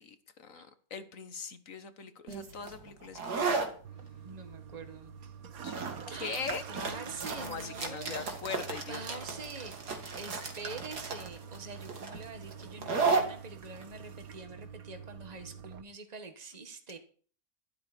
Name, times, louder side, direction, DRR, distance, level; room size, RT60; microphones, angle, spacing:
voice 1, 0.0-3.6 5.6-5.8 6.1-6.6 7.4-9.2, left 5 dB, 55° left, 1.7 m, -41 dB
sound 1, 2.3-15.7, right 4 dB, 80° right, 2.7 m, -35 dB
Toilet flush, 3.8-15.8, right 7 dB, 65° right, 1.5 m, -47 dB
voice 2, 4.2-5.1 6.1-8.3 8.9-9.8 10.2-17.0, right 4 dB, 25° right, 1.8 m, -45 dB
12.5 x 12.5 x 4.5 m
omnidirectional pair, 1.7 m